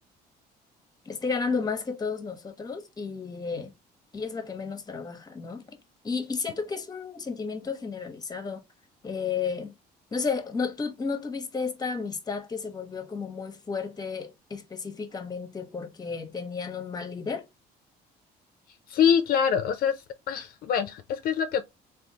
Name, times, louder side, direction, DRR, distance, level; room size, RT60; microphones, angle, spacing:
voice 1, 1.1-3.7 4.1-5.8 6.0-8.6 9.0-9.7 10.1-17.4, left 5 dB, 20° left, 0.8 m, -32 dB
voice 2, 18.9-20.0 20.3-21.6, left 8 dB, 60° left, 0.4 m, -24 dB
3.4 x 2.4 x 2.7 m
cardioid pair, 110°, 17 cm